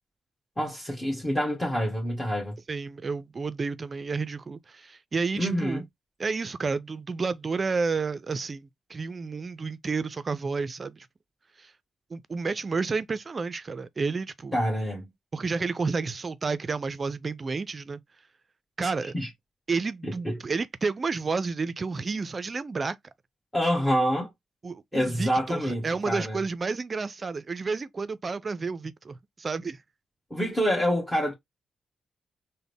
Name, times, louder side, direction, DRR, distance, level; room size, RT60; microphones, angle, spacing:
voice 1, 0.6-2.6 5.4-5.8 14.5-15.1 18.8-19.3 20.0-20.4 23.5-24.3 24.9-26.4 30.3-31.3, equal, 20° left, 1.4 m, -27 dB
voice 2, 2.7-5.9 6.2-11.1 11.6-11.7 12.1-14.6 15.3-18.0 18.8-19.1 19.7-23.0 24.6-29.8, right 4 dB, 45° right, 0.4 m, -31 dB
3.7 x 2.1 x 3.4 m
supercardioid pair, 50°, 0 cm